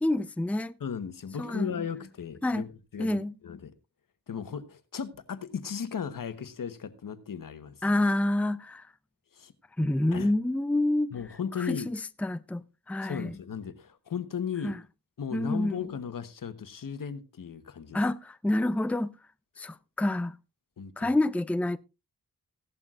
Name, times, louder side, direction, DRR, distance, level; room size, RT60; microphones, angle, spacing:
voice 1, 0.0-0.7 1.4-1.7 2.4-2.7 3.0-3.3 7.8-8.9 9.8-11.1 11.6-13.3 14.6-14.8 15.3-15.9 17.9-19.2 19.6-20.3 21.0-21.8, left 1 dB, 5° left, 0.5 m, -28 dB
voice 2, 0.8-2.7 2.9-3.7 4.3-7.8 9.3-9.5 10.1-10.3 11.1-11.9 13.0-14.8 15.2-18.0 19.6-19.7 20.8-21.2, left 7 dB, 80° left, 1.2 m, -36 dB
16.5 x 11.5 x 2.5 m
wide cardioid pair, 90°, 33 cm